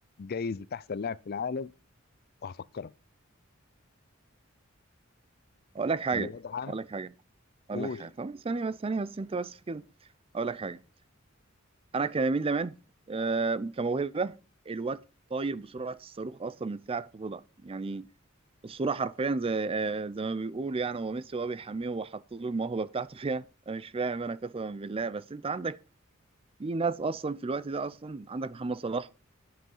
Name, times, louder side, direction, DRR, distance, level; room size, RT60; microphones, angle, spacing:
voice 1, 0.2-1.7 2.4-2.9 6.1-6.7 7.7-8.1, left 5 dB, 50° left, 0.4 m, -35 dB
voice 2, 5.7-6.3 6.7-7.1 7.7-9.8 10.3-10.8 11.9-12.8 13.1-14.4 14.7-15.0 15.3-18.1 18.6-25.8 26.6-29.1, right 4 dB, 30° right, 0.5 m, -32 dB
11.5 x 7.8 x 5.5 m
head